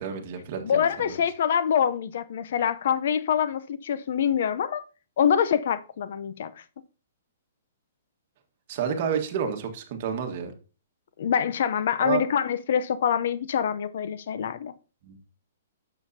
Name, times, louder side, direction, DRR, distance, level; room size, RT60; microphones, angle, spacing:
voice 1, 0.0-1.1 8.7-10.5 12.0-12.2 15.0-15.2, right 7 dB, 45° right, 1.6 m, -30 dB
voice 2, 0.6-4.8 5.2-6.5 11.2-14.7, left 8 dB, 60° left, 0.7 m, -25 dB
9.1 x 7.1 x 2.8 m
hypercardioid pair, 155°, 0 cm